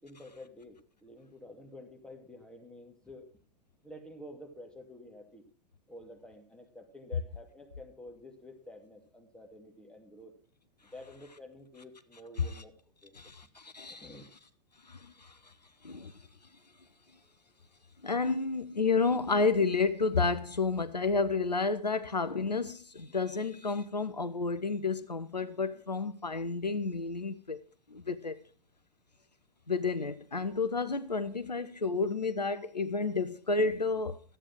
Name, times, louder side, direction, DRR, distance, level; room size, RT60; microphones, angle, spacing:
voice 1, 0.0-3.4 3.8-5.4 5.9-10.3 10.8-12.7 13.0-13.3 14.0-14.3 23.1-23.2, left 1 dB, 5° left, 2.5 m, -50 dB
voice 2, 13.1-14.1 14.8-15.5 15.8-16.1 18.0-27.6 27.9-28.4 29.7-34.2, left 4 dB, 85° left, 0.8 m, -31 dB
13.0 x 8.7 x 6.0 m
figure-of-eight pair, 95°, 21 cm